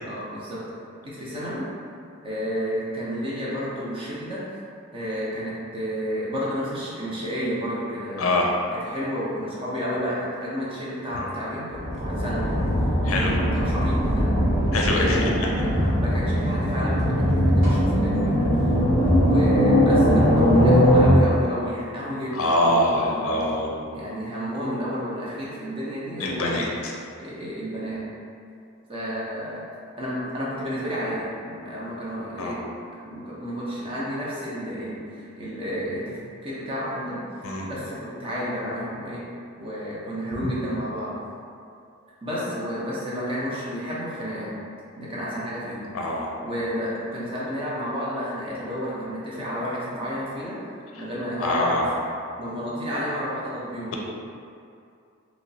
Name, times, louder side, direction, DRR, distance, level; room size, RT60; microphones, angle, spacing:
voice 1, 0.1-0.7 1.0-1.7 2.2-4.4 4.9-8.3 8.8-14.4 14.6-23.3 23.9-26.8 27.2-28.0 28.9-29.6 30.0-32.6 32.9-37.2 37.6-39.2 39.6-41.2 42.2-44.5 45.0-46.0 46.4-50.6 51.0-51.9 52.4-54.0, equal, 25° right, -8 dB, 0.7 m, -31 dB
voice 2, 8.2-8.5 13.0-13.3 14.7-15.3 22.3-23.7 26.2-26.9 32.4-32.5 37.4-37.7 40.4-40.5 45.9-46.3 51.4-51.8, left 1 dB, 75° left, -1 dB, 0.4 m, -24 dB
sound 1, 11.7-21.1, equal, 50° right, 1.3 m, -20 dB
3.0 x 2.9 x 2.7 m, 2.4 s
head